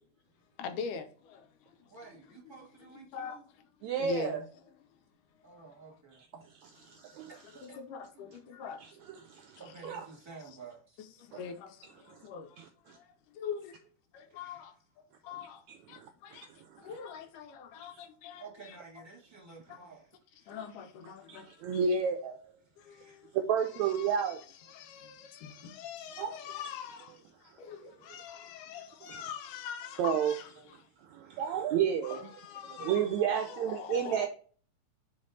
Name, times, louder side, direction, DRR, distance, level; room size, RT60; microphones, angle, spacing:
voice 1, 0.6-1.8 3.1-3.4 4.0-4.4 6.3-6.4 6.7-7.1 7.6-8.8 11.0-13.8 14.1-15.6 15.9-18.7 19.7-19.8 20.5-21.8 22.8-23.3 23.7-30.5 31.6-31.7 32.0-33.0 33.4-34.3, left 7 dB, 75° left, 2.2 m, -43 dB
voice 2, 1.9-3.4 5.4-6.2 7.3-7.8 8.1-8.4 9.4-11.0 14.3-14.7 15.2-15.5 16.7-16.9 17.7-17.8 18.4-20.5 22.4-23.4 24.8-25.0 27.4-28.2 28.4-28.6 30.5-30.7 31.2-31.5 32.2-32.3, right 4 dB, 10° right, 2.1 m, -53 dB
voice 3, 3.8-4.4 6.6-7.3 9.3-10.0 12.1-12.2 12.6-13.0 15.7-16.4 16.8-16.9 21.3-22.4 23.3-24.4 26.2-26.3 29.1-29.2 30.0-30.3 31.1-32.3 32.7-34.3, right 7 dB, 85° right, 1.6 m, -31 dB
5.3 x 5.2 x 3.9 m
omnidirectional pair, 3.9 m